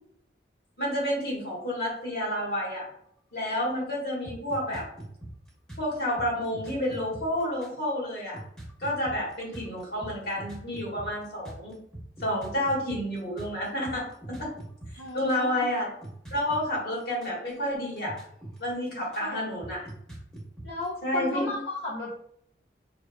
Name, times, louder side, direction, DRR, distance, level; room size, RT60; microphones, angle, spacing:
voice 1, 0.8-2.9 3.3-4.9 5.8-8.4 8.8-11.7 12.2-14.5 15.1-15.9 16.3-18.2 18.6-19.8 21.0-21.5, left 1 dB, 60° left, -4 dB, 1.4 m, -30 dB
sound 1, 4.2-7.9 8.3-15.5 16.0-17.7 18.0-19.3 19.6-20.8, right 1 dB, 5° left, 0.9 m, -42 dB
voice 2, 15.0-15.6 19.2-19.5 20.6-22.1, left 2 dB, 85° left, -4 dB, 0.7 m, -34 dB
5.0 x 3.2 x 2.2 m, 0.72 s
head